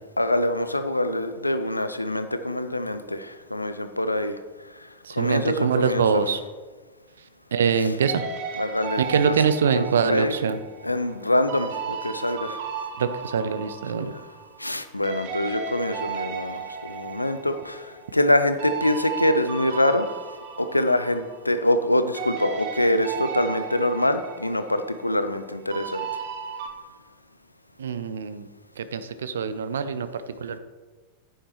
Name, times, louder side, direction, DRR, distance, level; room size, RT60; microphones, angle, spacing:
voice 1, 0.2-4.4 5.2-6.2 8.6-9.4 9.8-10.3 10.8-12.6 13.9-14.2 14.6-17.9 18.1-20.1 20.6-26.0, left 1 dB, 85° left, 10 dB, 0.6 m, -25 dB
voice 2, 5.0-6.4 7.5-8.2 9.0-10.6 13.0-14.1 27.8-28.5 28.8-30.6, right 6 dB, 65° right, 12 dB, 0.6 m, -24 dB
sound 1, 8.0-14.8 15.0-21.9 22.1-26.7, right 6 dB, 50° right, 1.4 m, -35 dB
10.0 x 9.4 x 3.0 m, 1.4 s
figure-of-eight pair, 90°, 0 cm